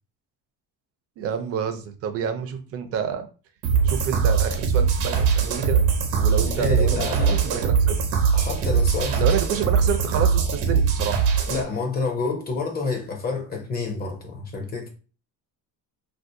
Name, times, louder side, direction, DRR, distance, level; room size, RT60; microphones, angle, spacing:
voice 1, 1.2-3.3 3.8-5.8 6.1-8.0 9.2-11.3, right 8 dB, 40° right, 0.4 m, -28 dB
sound 1, 3.6-11.6, right 6 dB, 80° right, 0.9 m, -21 dB
voice 2, 6.4-7.4 8.3-9.3 11.5-14.9, left 4 dB, 25° left, 0.5 m, -28 dB
2.6 x 2.4 x 3.6 m
cardioid pair, 165°, 38 cm